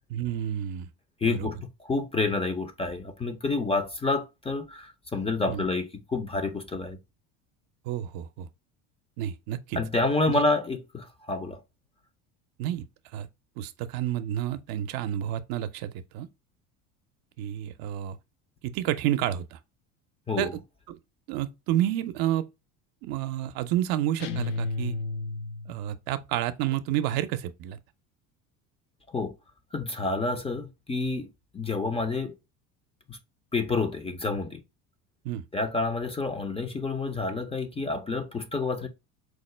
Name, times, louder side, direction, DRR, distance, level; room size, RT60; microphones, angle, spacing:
voice 1, 0.1-0.9 1.2-1.5 5.5-5.6 7.9-8.5 9.2-9.8 10.3-10.4 12.6-12.8 13.1-13.3 13.6-16.3 17.4-18.2 18.6-19.6 20.4-20.5 20.9-21.0 21.3-22.4 23.0-25.0 25.7-27.8 35.2-35.4, right 12 dB, 60° right, 0.6 m, -30 dB
voice 2, 1.2-7.0 9.8-11.6 20.3-20.5 29.1-29.3 29.7-31.3 31.5-32.3 33.1-33.2 33.5-34.6 35.5-38.9, left 3 dB, 15° left, 0.5 m, -29 dB
sound 1, 24.2-25.9, left 3 dB, 70° left, 0.6 m, -32 dB
4.7 x 2.1 x 3.1 m
supercardioid pair, 90°, 40 cm